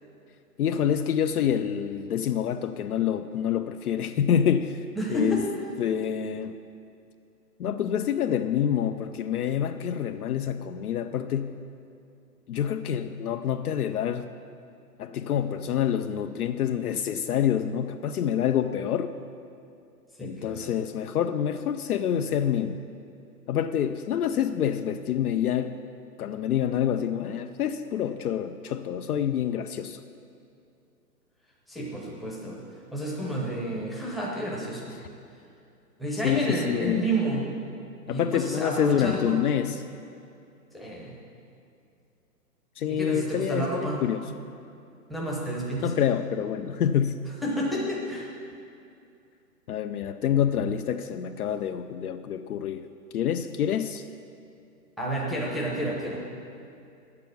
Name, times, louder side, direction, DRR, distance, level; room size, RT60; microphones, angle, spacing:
voice 1, 0.6-4.8 5.1-5.4 5.8-6.6 7.6-11.6 12.5-14.3 15.0-19.2 20.2-22.8 23.5-25.8 26.2-30.0 36.2-37.0 38.1-39.8 42.8-44.2 45.8-47.2 49.7-52.9 53.1-54.1, left 9 dB, 65° left, 9 dB, 0.6 m, -27 dB
voice 2, 4.9-5.4 20.2-20.8 31.7-32.6 32.9-34.9 36.0-37.4 38.0-39.4 40.7-41.1 42.9-44.0 45.1-46.0 47.4-48.3 55.0-56.2, right 1 dB, ahead, -3 dB, 0.7 m, -30 dB
8.1 x 6.9 x 8.3 m, 2.5 s
hypercardioid pair, 135°, 48 cm